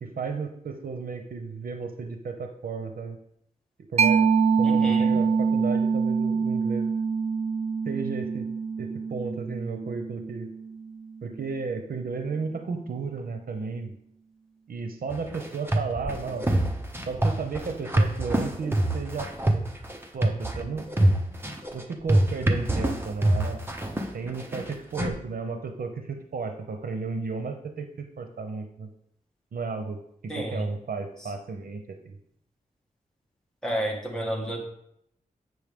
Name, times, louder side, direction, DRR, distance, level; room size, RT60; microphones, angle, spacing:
voice 1, 0.0-3.2 3.9-4.2 4.6-6.9 7.8-8.5 8.8-10.5 11.2-14.0 14.7-16.4 17.1-19.3 20.1-20.9 21.7-23.7 24.1-28.9 29.5-32.2, right 4 dB, 75° right, 6 dB, 0.7 m, -33 dB
Mallet percussion, 4.0-11.3, right 5 dB, 45° right, 0.4 m, -25 dB
voice 2, 4.6-5.2 30.3-30.7 33.6-34.6, right 1 dB, 5° left, -2 dB, 1.7 m, -31 dB
sound 1, 15.1-25.1, right 1 dB, 15° right, 0.8 m, -25 dB
7.8 x 6.3 x 3.6 m, 0.72 s
wide cardioid pair, 120°, 15 cm